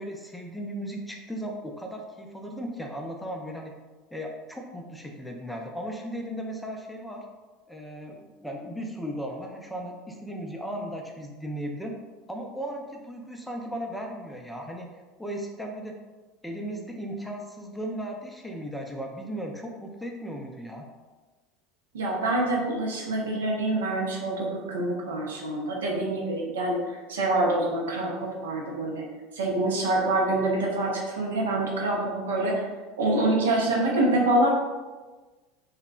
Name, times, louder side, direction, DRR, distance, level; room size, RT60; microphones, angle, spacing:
voice 1, 0.0-3.7 4.1-7.3 7.7-12.0 12.3-14.9 15.2-16.0 16.4-20.8, equal, 5° left, 1 dB, 0.3 m, -36 dB
voice 2, 21.9-26.8 27.1-29.0 29.3-32.6 33.0-34.5, right 2 dB, 75° right, -1 dB, 0.5 m, -26 dB
2.7 x 2.0 x 2.4 m, 1.3 s
figure-of-eight pair, 75°, 0 cm